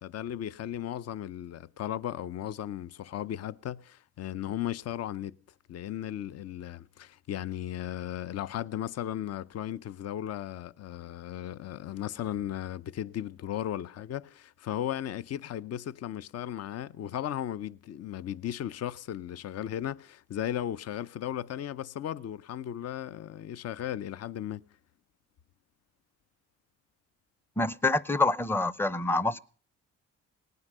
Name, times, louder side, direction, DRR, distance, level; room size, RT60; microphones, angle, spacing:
voice 1, 0.0-5.3 5.7-24.6, left 11 dB, 55° left, 0.6 m, -36 dB
voice 2, 27.6-29.4, left 2 dB, 10° left, 0.6 m, -26 dB
19.0 x 9.6 x 6.6 m
cardioid pair, 90°, 30 cm